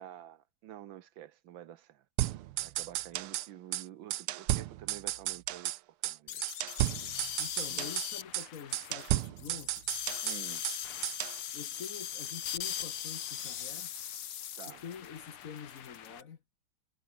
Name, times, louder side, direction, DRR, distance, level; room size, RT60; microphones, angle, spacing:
voice 1, 0.0-2.0 2.6-5.7 6.0-6.4 7.7-7.9 10.2-10.6 14.6-14.8, right 12 dB, 70° right, 1.5 m, -49 dB
sound 1, 2.2-3.5 3.7-3.8 4.1-5.8 6.0-6.2 6.4-8.1 8.3-8.5 8.7-10.8 11.0-11.4, right 15 dB, 85° right, 1.7 m, -33 dB
sound 2, 6.3-16.2, left 10 dB, 80° left, 2.3 m, -40 dB
voice 2, 7.4-9.8 11.5-13.9 14.7-16.4, left 7 dB, 45° left, 1.3 m, -46 dB
omnidirectional pair, 2.4 m